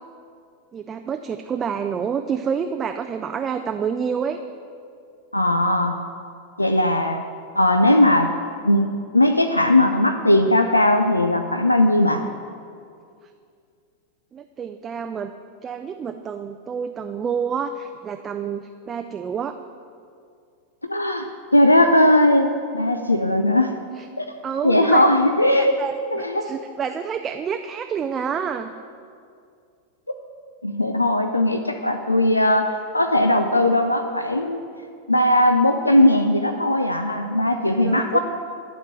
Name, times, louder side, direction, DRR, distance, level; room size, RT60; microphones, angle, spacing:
voice 1, 0.7-4.4 14.3-15.3 15.6-19.5 24.0-24.1 24.4-25.0 25.4-25.9 26.4-28.7 37.8-38.2, right 7 dB, 25° right, 7 dB, 0.4 m, -28 dB
voice 2, 5.3-6.0 6.6-7.2 7.6-8.3 8.6-12.3 20.9-23.8 24.2-24.3 24.6-25.8 26.1-26.5 30.6-34.6 35.1-38.2, left 1 dB, 85° left, 7 dB, 0.4 m, -18 dB
11.5 x 4.3 x 7.9 m, 2.3 s
figure-of-eight pair, 90°, 0 cm